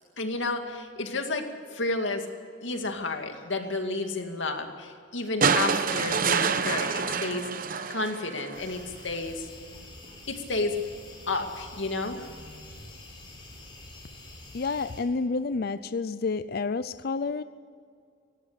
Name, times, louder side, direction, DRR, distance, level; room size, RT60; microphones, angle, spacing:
voice 1, 0.2-2.3 2.6-7.5 7.9-9.5 10.3-10.8 11.3-12.3, left 3 dB, 75° left, 5 dB, 2.3 m, -31 dB
sound 1, 5.4-8.7 10.0-10.1, right 5 dB, 45° right, 1.0 m, -27 dB
sound 2, 8.5-15.0, left 2 dB, 25° left, 5.0 m, -47 dB
voice 2, 14.5-17.4, left 4 dB, 55° left, 13 dB, 0.5 m, -29 dB
18.0 x 17.0 x 8.3 m, 2.3 s
head